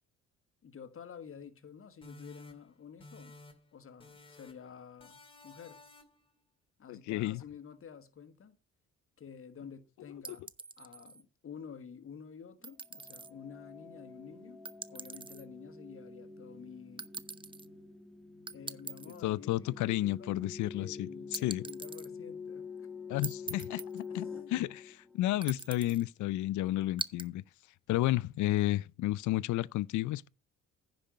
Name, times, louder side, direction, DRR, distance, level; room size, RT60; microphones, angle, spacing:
voice 1, 0.6-3.4 3.7-5.8 6.8-8.6 9.2-10.5 10.8-14.6 14.9-17.1 18.5-20.4 20.7-22.9 24.1-24.5, left 7 dB, 45° left, 1.5 m, -50 dB
sound 1, 2.0-3.7 4.0-4.7 5.0-6.3, left 2 dB, 15° left, 2.2 m, -54 dB
voice 2, 6.9-7.4 19.2-21.6 23.1-27.4 27.9-30.3, left 16 dB, 75° left, 0.5 m, -32 dB
sound 2, 10.2-11.2 12.6-13.3 14.6-15.4 17.0-17.7 18.5-19.2 21.3-22.1 23.2-24.1 25.4-26.0 27.0-27.3, right 4 dB, 15° right, 0.5 m, -42 dB
sound 3, 12.9-25.6, left 5 dB, ahead, 1.6 m, -47 dB
10.0 x 5.3 x 5.7 m
cardioid pair, 90°, 30 cm